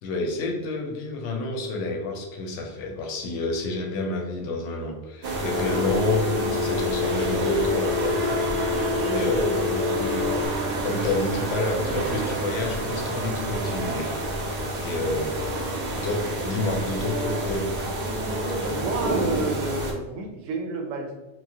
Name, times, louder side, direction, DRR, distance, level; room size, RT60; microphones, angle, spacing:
voice 1, 0.0-8.3 9.0-10.4 10.8-14.1 14.8-15.3 16.0-17.7, left 2 dB, 75° left, 1 dB, 0.9 m, -29 dB
sound 1, 5.2-19.9, right 1 dB, 55° right, 0.7 m, -28 dB
Telephone, 5.5-10.5, left 6 dB, 50° left, 0.4 m, -28 dB
voice 2, 18.6-21.2, right 3 dB, 85° right, 2 dB, 0.9 m, -30 dB
3.0 x 2.1 x 2.8 m, 1.1 s
omnidirectional pair, 1.3 m